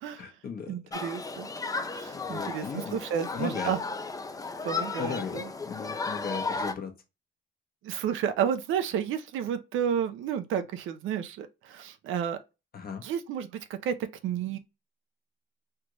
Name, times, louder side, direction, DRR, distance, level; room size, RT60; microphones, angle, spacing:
voice 1, 0.2-0.8 2.1-3.0 3.3-3.7 5.0-6.9 12.7-13.0, left 6 dB, 50° left, 1.0 m, -37 dB
voice 2, 0.7-1.5 1.9-3.8 4.6-5.5 7.8-12.4 13.0-13.9 14.2-14.6, right 8 dB, 85° right, 0.6 m, -31 dB
Human group actions, 0.9-6.7, left 4 dB, 20° left, 0.4 m, -34 dB
3.4 x 2.5 x 3.0 m
cardioid pair, 90°, 20 cm